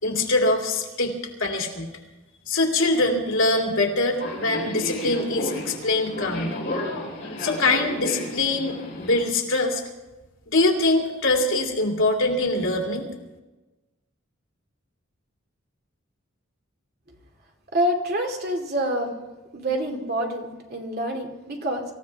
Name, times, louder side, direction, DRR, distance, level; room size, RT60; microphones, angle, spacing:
voice 1, 0.0-1.1 1.4-1.9 2.5-6.6 7.4-9.8 10.5-13.1, left 2 dB, 70° left, 1 dB, 2.7 m, -23 dB
Subway metro underground, 4.2-9.2, left 1 dB, 40° left, 6.2 m, -32 dB
voice 2, 17.7-19.1 19.5-21.8, right 1 dB, 50° right, 2 dB, 2.5 m, -27 dB
25.0 x 15.0 x 3.5 m, 1.1 s
head